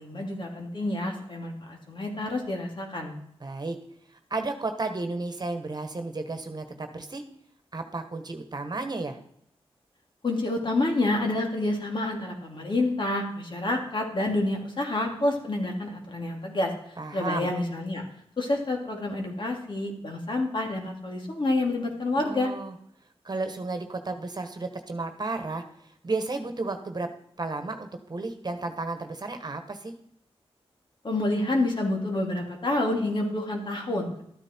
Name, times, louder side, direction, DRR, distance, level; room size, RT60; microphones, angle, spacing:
voice 1, 0.0-3.1 10.2-16.7 17.1-18.0 18.4-22.5 31.0-34.2, left 2 dB, 50° left, 1 dB, 2.7 m, -28 dB
voice 2, 3.4-3.8 4.3-7.2 7.7-9.2 17.0-17.5 22.2-22.7 23.2-25.6 26.0-27.1 27.4-29.9, right 3 dB, 40° right, 7 dB, 1.4 m, -33 dB
13.0 x 9.0 x 4.5 m, 0.70 s
cardioid pair, 65°, 10 cm